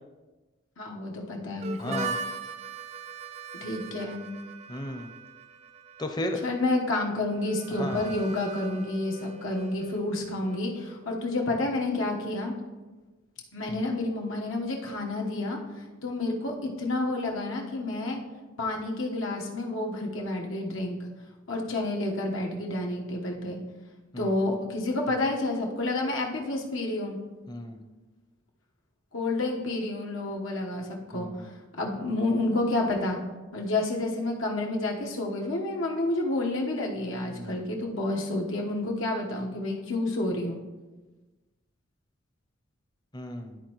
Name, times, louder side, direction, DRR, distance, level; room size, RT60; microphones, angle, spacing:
voice 1, 0.8-2.1 3.6-4.3 6.4-12.5 13.5-15.6 16.0-18.2 18.6-21.0 21.5-23.6 24.2-27.2 29.1-31.4 31.8-33.2 33.5-40.6, left 2 dB, 85° left, 0 dB, 1.2 m, -29 dB
Harmonica, 1.6-11.2, right 4 dB, 30° right, 0.3 m, -41 dB
voice 2, 1.8-2.2 4.7-5.1 6.0-6.4 7.8-8.1 13.7-13.8 24.1-24.4 27.5-27.8 31.1-31.5 37.3-37.6 43.1-43.6, left 1 dB, 20° left, 5 dB, 0.6 m, -35 dB
12.5 x 4.4 x 3.1 m, 1.2 s
head